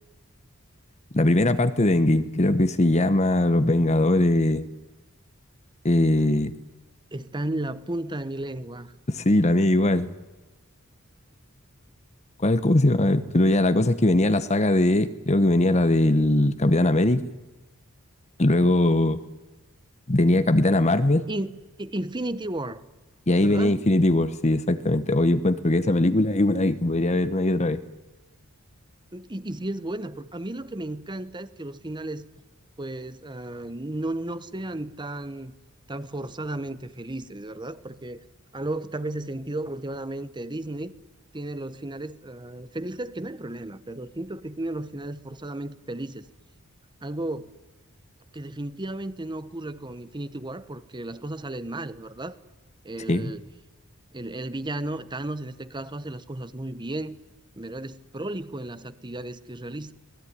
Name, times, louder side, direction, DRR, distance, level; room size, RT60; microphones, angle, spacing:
voice 1, 1.1-4.7 5.8-6.5 9.1-10.1 12.4-17.3 18.4-19.2 20.1-21.3 23.3-27.8 53.1-53.3, left 1 dB, 30° left, 12 dB, 1.0 m, -21 dB
voice 2, 7.1-8.9 21.3-22.8 23.4-23.9 29.1-32.3 32.8-35.5 35.9-38.2 38.5-40.9 41.3-46.3 47.0-47.5 48.3-52.4 52.8-53.5 54.1-57.2 57.6-59.9, right 1 dB, 20° right, 14 dB, 1.0 m, -34 dB
26.5 x 19.0 x 9.8 m, 1.1 s
head